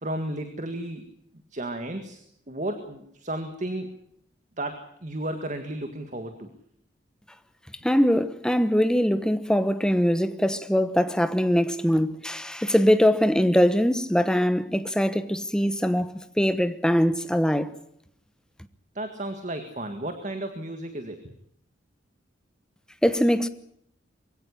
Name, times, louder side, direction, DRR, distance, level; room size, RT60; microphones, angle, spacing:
voice 1, 0.0-1.0 1.5-2.2 2.5-3.9 4.6-6.5 19.0-21.3, right 1 dB, 40° right, 1.8 m, -33 dB
voice 2, 7.8-17.7 23.0-23.5, equal, 5° left, 1.0 m, -22 dB
22.5 x 16.5 x 10.0 m
head